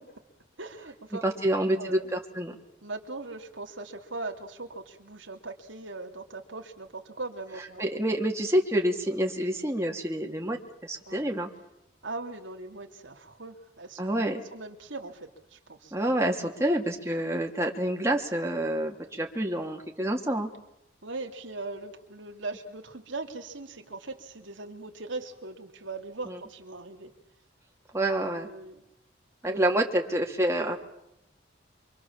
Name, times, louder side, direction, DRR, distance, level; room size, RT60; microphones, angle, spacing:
voice 1, 0.6-2.0 2.8-7.8 11.1-11.2 12.0-14.0 14.5-15.9 21.0-27.1 28.2-28.8 29.4-29.6 30.1-30.2, right 3 dB, 80° right, 3 dB, 3.0 m, -40 dB
voice 2, 1.1-2.6 7.8-11.5 14.0-14.4 15.9-20.5 26.2-26.4 27.9-28.5 29.4-30.8, right 1 dB, 15° right, 1 dB, 2.7 m, -28 dB
27.0 x 25.0 x 7.4 m, 0.84 s
head